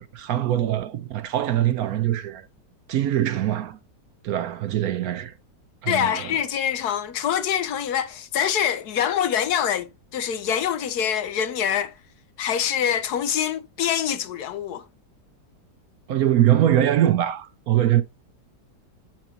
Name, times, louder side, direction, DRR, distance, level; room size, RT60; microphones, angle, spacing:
voice 1, 0.1-2.5 2.9-3.8 4.2-5.3 5.8-6.4 16.1-18.0, right 12 dB, 70° right, 1.0 m, -22 dB
voice 2, 5.9-11.9 12.4-14.8, left 9 dB, 70° left, 1.2 m, -25 dB
7.5 x 5.9 x 2.8 m
omnidirectional pair, 1.8 m